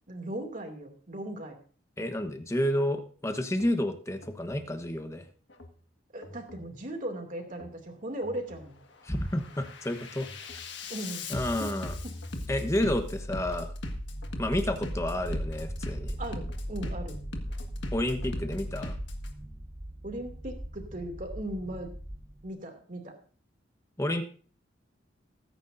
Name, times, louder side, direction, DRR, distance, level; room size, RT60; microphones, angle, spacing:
voice 1, 0.1-1.6 6.1-8.8 10.9-11.2 11.6-11.7 12.0-12.2 16.2-17.2 20.0-21.9 22.4-23.1, right 1 dB, 40° right, 4 dB, 2.6 m, -38 dB
voice 2, 2.0-5.2 9.0-10.3 11.3-11.9 12.5-13.7 14.4-16.2 17.9-19.0 24.0-24.2, left 1 dB, 15° left, 8 dB, 1.1 m, -30 dB
Bass drum, 3.5-3.7 4.2-4.7 5.5-5.7 6.2-6.7 7.5-7.7 8.2-8.7 9.1-19.3, left 1 dB, 60° left, 1.7 m, -38 dB
sound 1, 14.1-22.5, equal, 10° right, 0.8 m, -40 dB
20.5 x 9.7 x 2.6 m, 0.42 s
head